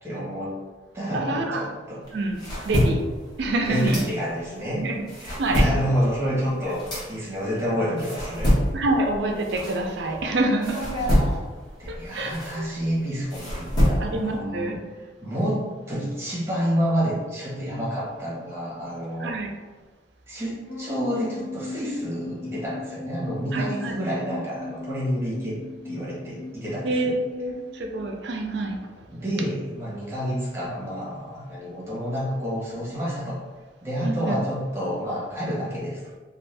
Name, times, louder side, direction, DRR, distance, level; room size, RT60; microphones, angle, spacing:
voice 1, 0.0-0.5 0.9-2.0 3.6-4.9 5.2-8.5 11.8-14.8 15.2-19.3 20.3-25.6 25.8-27.1 29.1-33.4 33.8-36.0, equal, 15° right, -8 dB, 1.1 m, -29 dB
voice 2, 1.1-1.6 2.1-2.4 2.6-3.0 3.4-4.0 4.7-5.0 5.4-5.7 8.7-10.8 11.9-12.7 14.0-14.8 19.2-19.5 23.5-23.9 26.8-28.8 34.0-34.4, right 2 dB, 65° right, 2 dB, 0.4 m, -26 dB
sound 1, 2.0-4.6 4.9-10.2 10.6-14.4, equal, 25° left, 1.0 m, -26 dB
sound 2, 20.7-28.1, left 2 dB, 55° left, 0.5 m, -38 dB
2.6 x 2.4 x 3.3 m, 1.3 s
head